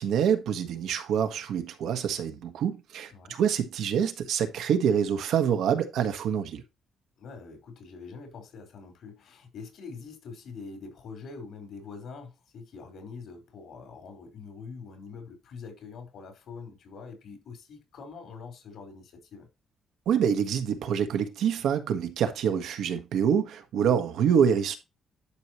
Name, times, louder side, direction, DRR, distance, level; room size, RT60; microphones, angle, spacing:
voice 1, 0.0-6.6 20.1-24.8, right 8 dB, 80° right, 1.4 m, -26 dB
voice 2, 7.2-19.5, left 5 dB, 70° left, 4.5 m, -44 dB
11.5 x 5.5 x 3.1 m
cardioid pair, 90°, 0 cm